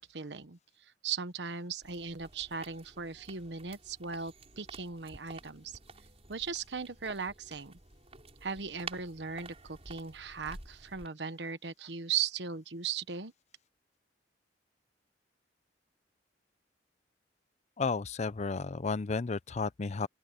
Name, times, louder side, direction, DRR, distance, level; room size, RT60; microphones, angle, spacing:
voice 1, 0.0-5.8 6.3-7.8 8.4-13.3, right 6 dB, 75° right, 1.2 m, -38 dB
sound 1, 1.8-11.1, right 3 dB, 35° right, 5.3 m, -51 dB
voice 2, 17.8-20.1, left 4 dB, 40° left, 0.5 m, -33 dB
open air
head